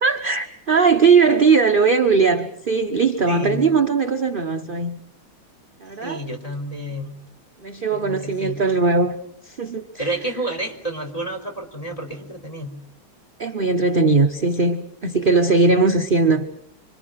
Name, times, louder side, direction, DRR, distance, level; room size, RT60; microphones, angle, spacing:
voice 1, 0.0-5.0 5.8-6.2 7.6-9.1 9.4-10.1 13.4-16.5, right 4 dB, 40° right, 6 dB, 0.8 m, -19 dB
voice 2, 3.3-3.7 6.0-7.2 7.9-8.6 10.0-12.8, right 1 dB, 15° left, 3 dB, 3.7 m, -30 dB
26.5 x 26.0 x 6.3 m, 0.67 s
omnidirectional pair, 2.4 m